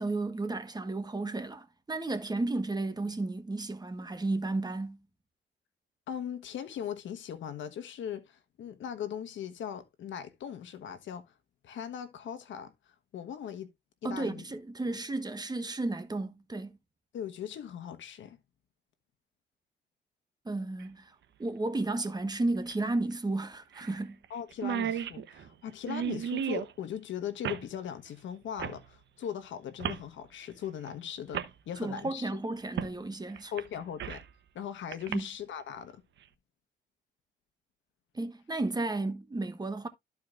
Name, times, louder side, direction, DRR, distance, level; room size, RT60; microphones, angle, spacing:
voice 1, 0.0-5.0 14.0-16.8 20.4-21.1 21.4-24.2 31.8-33.5 35.1-35.2 38.1-39.9, right 2 dB, 20° right, 1.3 m, -33 dB
voice 2, 6.1-11.3 11.6-12.7 13.1-13.7 14.0-14.4 14.8-15.0 17.1-18.4 24.3-32.4 33.5-34.2 34.5-36.0, left 9 dB, 70° left, 1.3 m, -39 dB
sound 1, 20.8-20.9 22.7-22.8 23.1-23.2 23.7-24.0 24.2-24.3 24.5-26.7 27.4-27.7 28.6-28.8 29.8-30.1 30.9-31.0 31.3-31.5 32.8-32.9 33.4-34.3 34.9-35.1, right 9 dB, 65° right, 1.0 m, -34 dB
13.5 x 4.7 x 2.5 m
cardioid pair, 90°, 20 cm